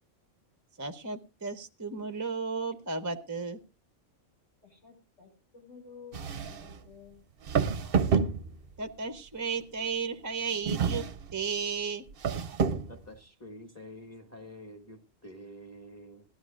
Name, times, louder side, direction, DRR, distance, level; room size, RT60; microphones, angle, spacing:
voice 1, 0.8-3.6 8.1-8.2 8.8-11.1 11.3-12.0, right 5 dB, 15° right, 7 dB, 0.7 m, -34 dB
voice 2, 4.6-7.3, left 6 dB, 80° left, 0 dB, 6.3 m, -52 dB
sound 1, 6.1-6.8 7.5-8.8 10.7-11.4 12.1-13.0, right 6 dB, 55° right, 0.9 m, -29 dB
voice 3, 12.9-16.2, equal, 10° left, 4 dB, 1.4 m, -48 dB
18.5 x 12.5 x 2.5 m, 0.28 s
omnidirectional pair, 1.3 m